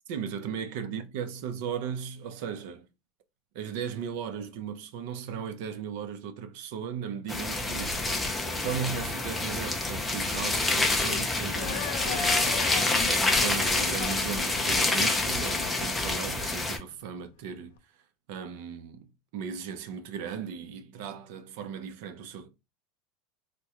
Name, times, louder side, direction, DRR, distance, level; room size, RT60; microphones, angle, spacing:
voice 1, 0.1-2.9 3.5-8.0 8.5-17.8 18.3-22.5, right 7 dB, 60° right, 0.5 m, -37 dB
sound 1, 7.3-16.8, left 2 dB, 5° left, 0.4 m, -27 dB
sound 2, 7.7-17.8, left 7 dB, 80° left, 0.6 m, -40 dB
3.5 x 2.2 x 2.9 m
supercardioid pair, 170°, 0 cm